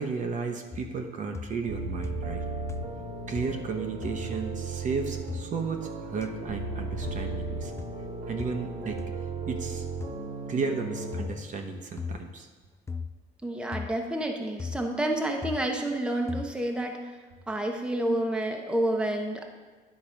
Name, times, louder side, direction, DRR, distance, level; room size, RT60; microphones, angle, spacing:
voice 1, 0.0-2.4 3.3-7.7 8.3-9.0 9.5-9.9 10.5-12.5, right 4 dB, 50° right, 4 dB, 0.9 m, -33 dB
sound 1, 0.7-1.1 1.3-1.8 2.0-2.4 2.7-3.1 3.3-3.7 4.0-4.2 5.3-5.5 6.2-6.3 7.1-7.3 7.8-8.0 8.4-8.6 9.0-9.1 10.0-10.2 11.1-11.4 12.0-12.3 12.9-13.2 13.7-13.9 14.6-14.9 15.4-15.7 16.3-16.5, left 5 dB, 15° left, 0.3 m, -38 dB
sound 2, 1.6-11.2, right 3 dB, 65° right, 1.5 m, -36 dB
voice 2, 13.4-17.0 17.5-19.4, right 1 dB, 5° right, 2 dB, 0.9 m, -29 dB
10.0 x 3.9 x 5.7 m, 1.3 s
cardioid pair, 110°, 17 cm